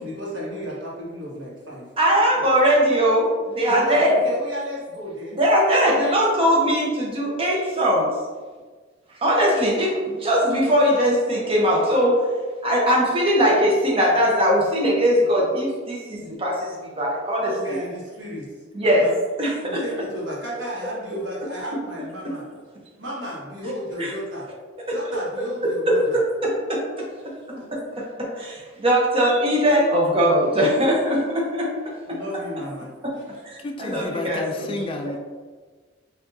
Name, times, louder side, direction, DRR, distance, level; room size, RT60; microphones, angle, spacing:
voice 1, 0.0-1.9 3.7-5.4 5.8-6.2 17.4-18.5 18.8-19.1 19.6-22.4 23.0-24.5 24.9-26.2 27.5-27.6 32.1-32.9, equal, 75° right, -5 dB, 1.3 m, -33 dB
voice 2, 2.0-4.2 5.4-8.1 9.2-12.3 12.6-17.5 18.7-19.1 19.4-19.8 24.0-24.1 25.9-26.0 26.4-26.8 27.7-31.7 32.1-32.2 33.4-34.8, equal, 30° right, -3 dB, 0.9 m, -20 dB
voice 3, 33.6-35.2, left 2 dB, 30° left, 4 dB, 0.3 m, -31 dB
5.7 x 2.6 x 2.7 m, 1.4 s
head